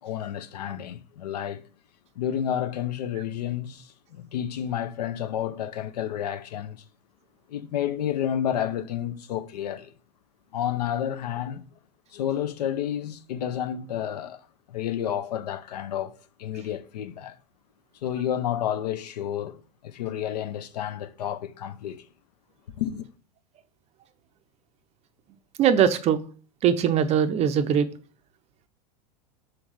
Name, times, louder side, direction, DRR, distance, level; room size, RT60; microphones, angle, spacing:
voice 1, 0.0-1.6 2.2-6.8 7.5-9.9 10.5-11.7 12.1-14.4 14.7-17.4 18.0-22.1 22.8-23.1, left 10 dB, 75° left, 0.5 m, -30 dB
voice 2, 25.6-26.2 26.6-27.9, right 8 dB, 30° right, 0.5 m, -21 dB
4.5 x 3.5 x 3.1 m
hypercardioid pair, 95°, 21 cm